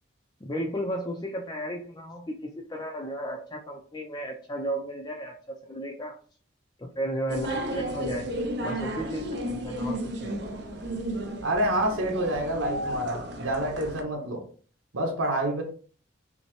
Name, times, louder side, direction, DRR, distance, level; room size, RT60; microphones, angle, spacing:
voice 1, 0.4-5.3 5.6-6.2 6.8-8.3 8.6-10.4, equal, 20° left, 0 dB, 0.4 m, -34 dB
sound 1, 7.3-14.0, right 1 dB, 55° right, 0.6 m, -33 dB
voice 2, 11.4-14.4 14.9-15.6, right 1 dB, 85° right, 1 dB, 1.0 m, -28 dB
5.4 x 2.1 x 3.0 m, 0.43 s
head